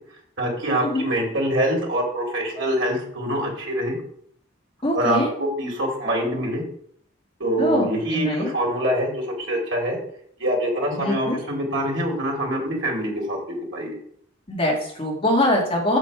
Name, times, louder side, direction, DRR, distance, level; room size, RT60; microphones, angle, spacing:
voice 1, 0.4-4.0 4.9-6.6 7.4-10.0 10.4-14.0, right 1 dB, 70° right, -1 dB, 2.7 m, -25 dB
voice 2, 4.8-5.3 7.6-8.5 11.0-11.4 14.5-16.0, left 1 dB, 25° left, -2 dB, 2.2 m, -23 dB
6.8 x 5.8 x 4.7 m, 0.65 s
head